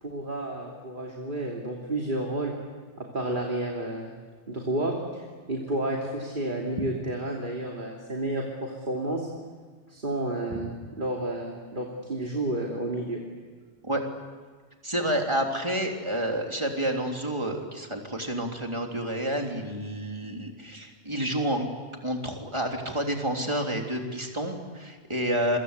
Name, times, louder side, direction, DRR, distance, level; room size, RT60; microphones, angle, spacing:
voice 1, 0.0-2.6 3.0-4.1 4.5-9.3 9.9-13.2, right 1 dB, 45° right, -1 dB, 3.0 m, -31 dB
voice 2, 14.8-21.7 22.0-25.6, right 1 dB, 25° right, 2 dB, 3.5 m, -29 dB
28.5 x 24.0 x 8.3 m, 1.5 s
omnidirectional pair, 1.2 m